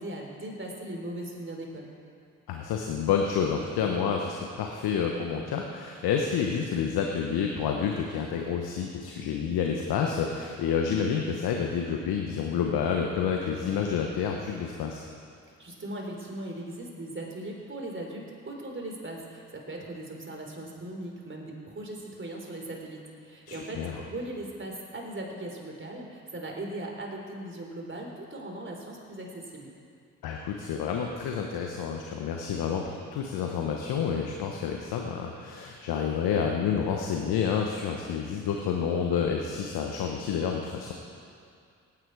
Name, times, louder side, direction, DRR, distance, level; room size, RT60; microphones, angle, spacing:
voice 1, 0.0-1.9 15.6-29.7, right 1 dB, 30° right, 0 dB, 3.8 m, -39 dB
voice 2, 2.5-15.0 23.5-24.0 30.2-40.9, left 7 dB, 70° left, 2 dB, 1.2 m, -29 dB
19.0 x 9.5 x 4.8 m, 2.3 s
hypercardioid pair, 45°, 38 cm